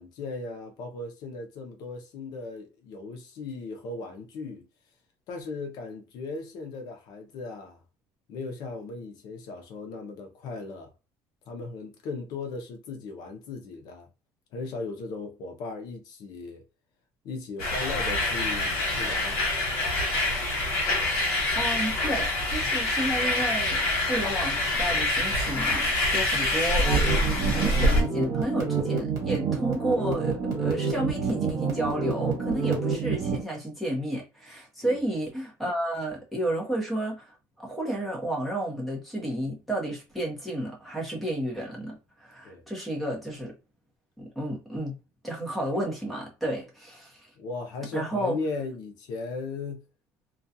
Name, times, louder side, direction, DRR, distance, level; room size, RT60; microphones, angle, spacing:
voice 1, 0.0-4.6 5.3-7.8 8.3-10.9 11.5-14.1 14.5-16.6 17.2-19.4 34.8-35.0 42.4-42.6 47.4-49.8, left 3 dB, 55° left, 0.6 m, -37 dB
sound 1, 17.6-28.0, left 1 dB, 90° left, 1.0 m, -26 dB
voice 2, 21.5-43.5 44.2-45.0 45.2-47.3 47.9-48.3, right 1 dB, ahead, 0.8 m, -32 dB
sound 2, 26.8-33.4, right 5 dB, 45° right, 1.3 m, -28 dB
2.4 x 2.2 x 2.7 m
cardioid pair, 165°, 8 cm